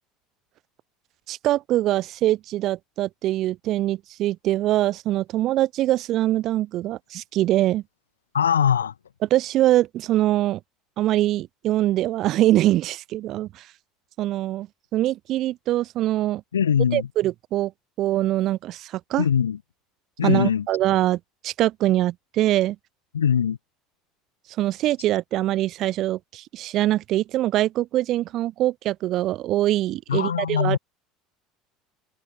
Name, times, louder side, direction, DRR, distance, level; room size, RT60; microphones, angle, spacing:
voice 1, 1.3-7.8 9.3-10.6 11.0-13.7 14.2-16.4 16.9-17.7 18.0-19.3 20.2-22.8 24.6-30.8, right 14 dB, 50° right, 0.4 m, -23 dB
voice 2, 8.3-8.9 16.5-17.1 19.2-19.6 20.2-20.7 23.1-23.6 30.1-30.8, left 8 dB, 80° left, 0.4 m, -21 dB
figure-of-eight pair, 65°, 0 cm